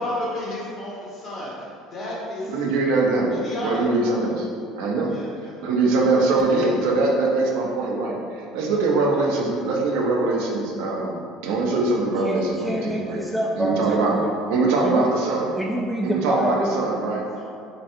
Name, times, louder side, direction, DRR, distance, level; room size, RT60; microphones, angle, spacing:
voice 1, 0.0-2.7 3.3-3.9 5.1-6.5 17.3-17.4, left 1 dB, 50° left, -6 dB, 1.4 m, -33 dB
voice 2, 2.5-4.5 4.8-5.1 5.6-13.2 13.5-14.2 14.5-15.5 16.0-17.2, right 3 dB, 80° right, -1 dB, 0.6 m, -22 dB
voice 3, 12.2-14.3 14.8-15.1 15.5-16.7, equal, ahead, -2 dB, 0.3 m, -26 dB
4.0 x 3.2 x 2.6 m, 2.4 s
supercardioid pair, 90°, 0 cm